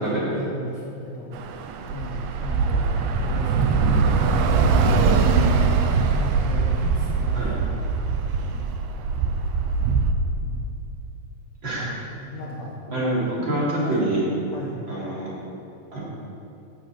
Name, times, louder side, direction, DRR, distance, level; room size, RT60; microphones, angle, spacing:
voice 1, 0.0-1.4 1.9-5.5 5.9-7.6 8.4-8.7 10.4-10.7 11.8-12.9 13.4-13.9 14.5-14.9, equal, 55° left, -4 dB, 2.3 m, -35 dB
Bus / Traffic noise roadway noise, 1.3-10.1, right 4 dB, 75° right, 1.9 m, -22 dB
voice 2, 12.9-14.2 14.9-15.3 15.9-16.0, right 1 dB, 35° right, -7 dB, 3.5 m, -26 dB
12.5 x 7.7 x 8.5 m, 2.8 s
omnidirectional pair, 4.2 m